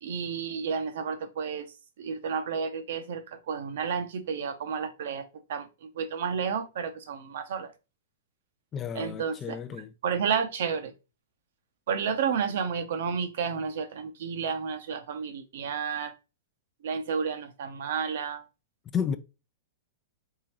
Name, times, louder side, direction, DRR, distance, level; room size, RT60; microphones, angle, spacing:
voice 1, 0.0-7.7 8.9-9.6 10.0-10.9 11.9-16.1 16.8-18.4, right 6 dB, 70° right, 0.7 m, -31 dB
voice 2, 8.7-9.9 18.9-19.2, left 7 dB, 25° left, 0.3 m, -31 dB
3.7 x 3.7 x 2.9 m
hypercardioid pair, 140°, 0 cm